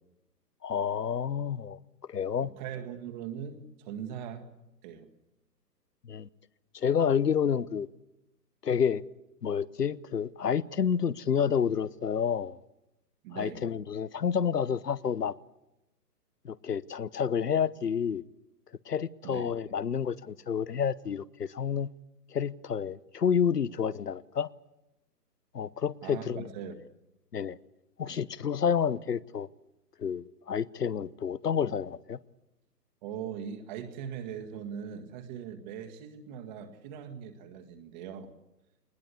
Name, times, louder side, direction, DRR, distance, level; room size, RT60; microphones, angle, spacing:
voice 1, 0.6-1.8 2.1-2.5 6.1-6.3 6.7-7.9 8.6-9.0 9.4-12.6 13.3-15.3 16.4-18.2 18.9-21.9 22.3-24.5 25.5-26.5 27.3-27.6 28.0-29.5 30.0-32.2, left 7 dB, 75° left, 0.9 m, -29 dB
voice 2, 2.4-4.5 4.8-5.1 13.2-13.7 19.2-19.5 26.0-26.7 28.0-28.2 33.0-38.3, right 8 dB, 30° right, 1.9 m, -40 dB
20.5 x 20.5 x 8.4 m
figure-of-eight pair, 130°, 48 cm